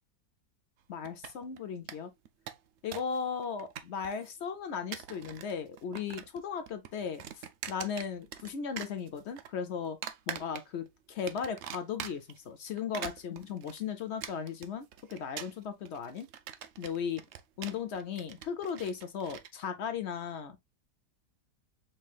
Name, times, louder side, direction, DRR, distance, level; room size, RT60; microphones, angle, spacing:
voice 1, 0.9-2.1 2.8-7.2 7.7-10.0 10.3-16.3 16.8-17.2 17.6-20.7, left 7 dB, 60° left, 0.7 m, -36 dB
sound 1, 1.0-1.6 1.9-2.0 2.3-3.2 3.4-4.3 4.7-5.5 5.8-6.4 6.7-8.5 8.8-9.5 10.0-10.9 11.3-12.4 12.8-19.5, right 9 dB, 85° right, 0.6 m, -43 dB
5.5 x 3.1 x 2.3 m
omnidirectional pair, 1.8 m